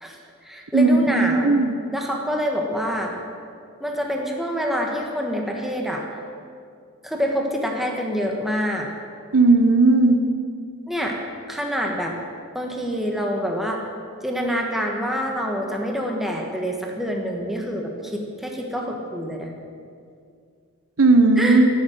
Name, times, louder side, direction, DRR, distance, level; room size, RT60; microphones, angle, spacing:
voice 1, 0.0-1.5 1.9-3.1 3.8-6.0 7.0-8.9 10.9-11.2 11.5-12.1 12.5-13.8 14.2-19.5 21.4-21.6, equal, ahead, 0 dB, 1.4 m, -26 dB
voice 2, 0.7-1.7 9.3-10.2 21.0-21.7, right 3 dB, 70° right, 7 dB, 0.9 m, -16 dB
11.5 x 7.4 x 9.2 m, 2.3 s
head